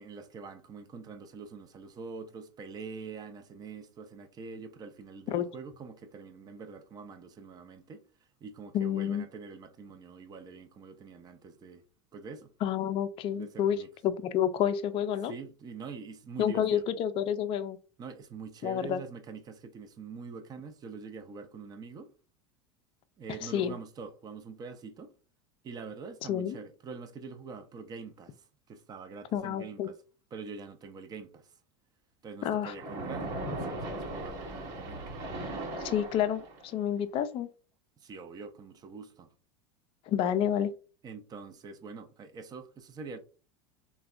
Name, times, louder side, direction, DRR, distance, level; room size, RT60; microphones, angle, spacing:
voice 1, 0.0-8.0 8.4-11.8 12.1-12.5 13.4-13.9 15.3-16.8 18.0-22.1 23.2-25.1 25.6-28.4 28.7-30.0 30.3-31.5 32.2-35.0 38.0-39.3 41.0-43.2, right 5 dB, 30° right, 0.5 m, -44 dB
voice 2, 8.7-9.3 12.6-15.3 16.4-17.8 18.6-19.0 23.4-23.8 26.3-26.6 29.3-29.9 32.4-32.7 35.8-37.5 40.1-40.7, left 9 dB, 40° left, 0.4 m, -29 dB
Splash splatter, 32.7-36.8, right 1 dB, 55° right, 1.2 m, -38 dB
3.3 x 2.2 x 2.3 m
hypercardioid pair, 105°, 14 cm